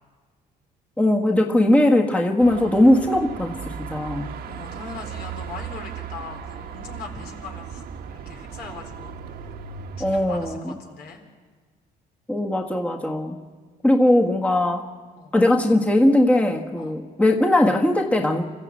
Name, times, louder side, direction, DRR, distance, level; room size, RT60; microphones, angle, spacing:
voice 1, 1.0-4.3 10.0-10.7 12.3-13.4 13.8-14.9 15.3-18.5, left 1 dB, 10° left, 1 dB, 1.5 m, -19 dB
Car passing by / Traffic noise roadway noise / Engine, 2.4-10.5, right 7 dB, 65° right, 1.4 m, -37 dB
voice 2, 4.4-9.5 10.0-11.2 15.2-15.3 16.8-17.0, left 5 dB, 70° left, 3 dB, 4.1 m, -40 dB
26.5 x 14.5 x 8.6 m, 1.5 s
cardioid pair, 110°, 17 cm